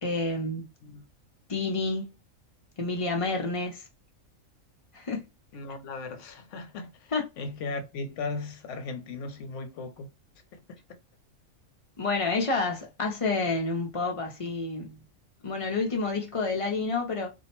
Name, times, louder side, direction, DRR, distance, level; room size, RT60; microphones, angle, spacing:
voice 1, 0.0-0.7 1.5-2.1 2.8-3.8 4.9-5.2 7.1-7.2 12.0-15.0 15.4-17.3, left 3 dB, 40° left, 0.5 m, -29 dB
voice 2, 5.5-10.1 10.5-10.8, left 3 dB, 70° left, 0.9 m, -37 dB
2.6 x 2.1 x 2.9 m
omnidirectional pair, 1.4 m